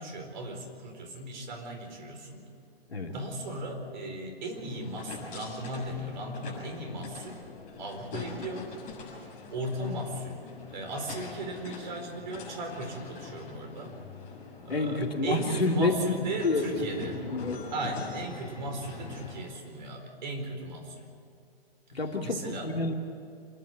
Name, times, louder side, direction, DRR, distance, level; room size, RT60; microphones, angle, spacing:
voice 1, 0.0-2.5 3.1-7.4 7.8-8.7 9.5-10.4 10.7-13.9 14.6-17.2 17.7-21.1 22.2-22.7, right 1 dB, 45° right, 3 dB, 4.5 m, -37 dB
sound 1, 4.5-19.4, left 5 dB, 25° left, 7.2 m, -44 dB
voice 2, 14.7-15.9 16.4-17.6 21.9-22.9, left 2 dB, 75° left, 3 dB, 2.7 m, -29 dB
26.5 x 11.5 x 9.0 m, 2.5 s
figure-of-eight pair, 125°, 30 cm